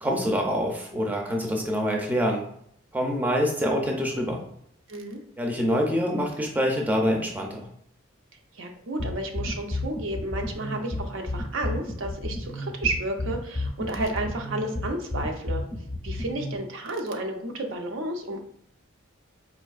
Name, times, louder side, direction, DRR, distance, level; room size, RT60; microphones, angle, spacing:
voice 1, 0.0-2.4 2.9-4.4 5.4-7.7, equal, 10° right, 0 dB, 0.4 m, -25 dB
voice 2, 4.9-5.2 8.5-15.6 16.0-18.4, right 2 dB, 75° right, 3 dB, 0.6 m, -31 dB
sound 1, 9.0-16.6, left 2 dB, 40° left, 0.6 m, -32 dB
4.3 x 2.6 x 2.3 m, 0.68 s
head